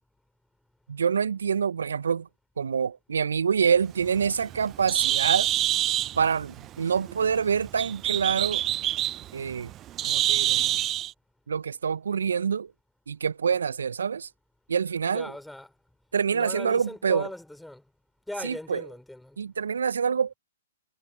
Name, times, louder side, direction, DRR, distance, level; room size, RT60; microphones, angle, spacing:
voice 1, 0.9-2.3 2.6-5.5 6.2-8.6 9.3-9.7 10.1-10.8 11.5-12.7 13.1-14.3 14.7-15.3 16.1-17.3 18.4-18.8 19.4-20.3, right 6 dB, 70° right, 0.8 m, -26 dB
Bird, 3.8-11.1, right 13 dB, 25° right, 0.5 m, -27 dB
voice 2, 15.1-15.7 16.3-17.9 18.3-19.4, left 1 dB, ahead, 4.7 m, -39 dB
figure-of-eight pair, 120°, 0 cm